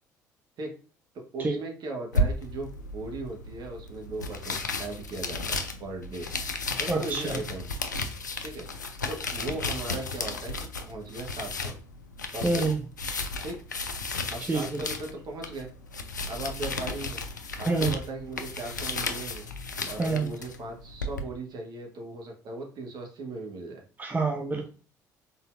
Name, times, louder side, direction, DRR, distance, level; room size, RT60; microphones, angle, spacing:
voice 1, 1.3-6.3 6.8-7.7 8.4-8.7 9.1-11.8 12.3-12.7 13.4-13.6 14.3-15.7 16.3-17.2 17.6-19.5 19.9-23.8, right 2 dB, 45° right, 2 dB, 1.2 m, -38 dB
sound 1, 2.1-21.2, left 2 dB, 85° left, 0.4 m, -34 dB
voice 2, 6.9-7.4 12.4-12.8 14.5-14.8 17.6-18.0 20.0-20.3 24.0-24.7, right 3 dB, 20° right, 4 dB, 0.6 m, -27 dB
3.9 x 3.9 x 2.5 m, 0.38 s
figure-of-eight pair, 50°, 9 cm